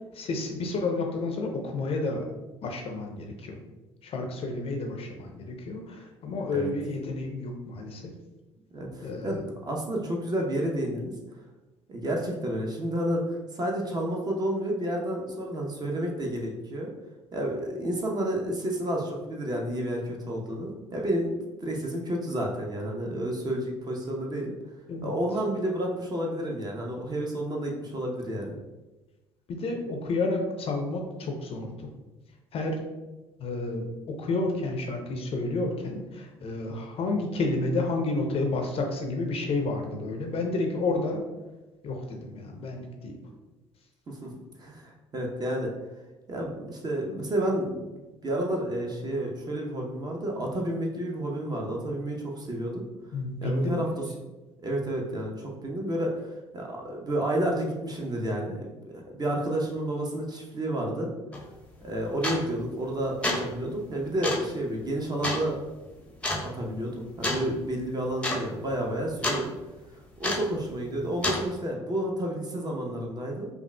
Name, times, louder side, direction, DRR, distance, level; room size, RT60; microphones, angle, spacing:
voice 1, 0.1-2.2 2.6-3.6 4.0-8.0 9.0-9.4 24.9-25.1 29.5-31.9 32.5-32.8 33.4-41.2 41.8-43.2 53.1-53.9, left 2 dB, 40° left, 2 dB, 0.6 m, -30 dB
voice 2, 8.7-11.1 11.9-13.2 13.5-16.9 17.3-24.5 25.0-28.5 44.1-44.3 44.6-45.7 46.3-52.9 53.4-53.9 54.6-56.1 56.5-61.1 61.8-65.6 66.4-69.5 70.2-73.5, right 1 dB, 25° right, 0 dB, 0.7 m, -30 dB
sound 1, 61.3-61.4 62.2-62.6 63.0-63.5 64.2-64.5 65.2-65.4 66.2-66.5 67.2-67.5 67.8-67.9 68.2-68.4 68.7-69.4 70.2-70.6 71.2-71.5, left 1 dB, 10° left, 0.7 m, -28 dB
5.3 x 2.4 x 2.2 m, 1.1 s
figure-of-eight pair, 55°, 15 cm